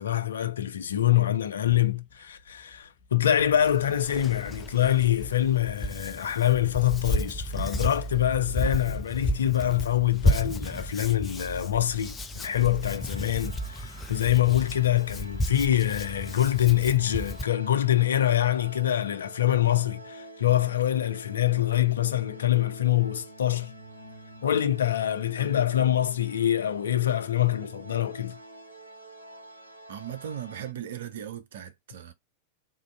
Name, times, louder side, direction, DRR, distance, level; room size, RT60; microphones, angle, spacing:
voice 1, 0.0-23.7 24.4-28.4, left 12 dB, 65° left, 0.4 m, -25 dB
sound 1, 1.6-8.8, left 3 dB, 45° left, 1.1 m, -50 dB
Hands, 3.4-17.4, left 1 dB, 15° left, 0.6 m, -32 dB
sound 2, 12.8-30.7, right 1 dB, 90° right, 1.0 m, -48 dB
voice 2, 29.9-32.1, right 10 dB, 60° right, 0.6 m, -38 dB
3.8 x 2.5 x 4.4 m
figure-of-eight pair, 90°, 0 cm